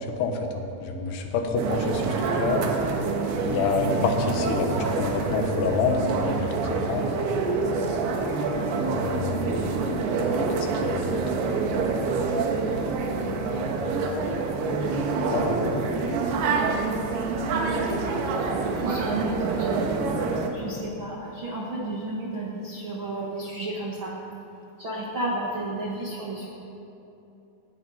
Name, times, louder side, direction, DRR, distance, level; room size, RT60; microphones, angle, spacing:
voice 1, 0.2-2.0 2.3-2.7 3.5-7.1 8.8-10.0 10.6-11.2 13.7-14.3 15.2-15.6, left 4 dB, 85° left, 4 dB, 3.5 m, -28 dB
sound 1, 1.6-20.5, right 4 dB, 80° right, 3.2 m, -26 dB
voice 2, 18.8-19.8 20.5-24.1 24.8-26.5, right 1 dB, 55° right, -4 dB, 1.4 m, -32 dB
19.0 x 16.5 x 4.3 m, 2.9 s
omnidirectional pair, 4.6 m